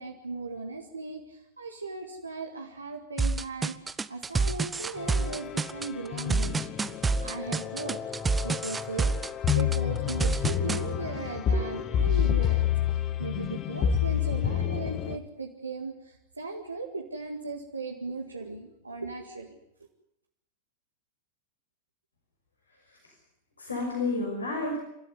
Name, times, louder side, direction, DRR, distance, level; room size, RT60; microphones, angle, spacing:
voice 1, 0.0-6.7 6.9-8.0 8.4-9.1 9.5-19.6, right 3 dB, 80° right, 1 dB, 2.0 m, -38 dB
sound 1, 3.2-10.8, right 4 dB, 15° right, 0.8 m, -28 dB
sound 2, 5.0-15.2, left 9 dB, 35° left, 1.7 m, -29 dB
voice 2, 22.7-23.1 23.6-24.8, left 3 dB, 75° left, 0 dB, 5.9 m, -31 dB
29.0 x 13.0 x 9.5 m, 0.85 s
figure-of-eight pair, 90°, 0 cm